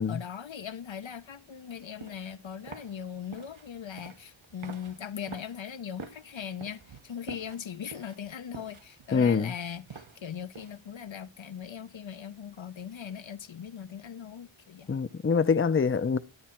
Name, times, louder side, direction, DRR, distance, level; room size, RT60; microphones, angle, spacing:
voice 1, 0.0-15.0, left 8 dB, 70° left, 0.6 m, -40 dB
sound 1, 1.7-10.9, right 5 dB, 75° right, 1.1 m, -48 dB
voice 2, 9.1-9.5 14.9-16.2, left 5 dB, 30° left, 0.5 m, -25 dB
11.0 x 9.4 x 4.3 m
wide cardioid pair, 45°, 48 cm